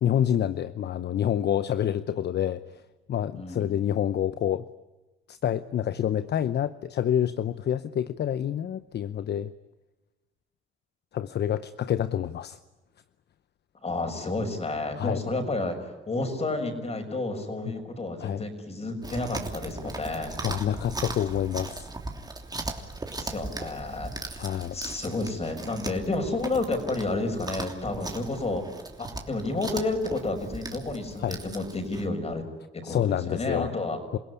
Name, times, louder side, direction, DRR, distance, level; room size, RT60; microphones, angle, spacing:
voice 1, 0.0-2.8 3.1-4.6 5.3-9.5 11.1-12.6 15.0-15.2 18.2-18.4 20.4-21.9 24.4-24.8 31.2-31.4 32.8-33.7 34.1-34.2, left 10 dB, 55° left, 14 dB, 0.8 m, -27 dB
voice 2, 3.3-3.8 13.8-20.3 23.1-32.4 32.7-34.0, left 2 dB, 30° left, 6 dB, 6.3 m, -31 dB
Chewing mastication, 19.0-32.1, right 3 dB, 20° right, 3.1 m, -38 dB
28.0 x 17.0 x 9.8 m, 1.1 s
cardioid pair, 90°, 20 cm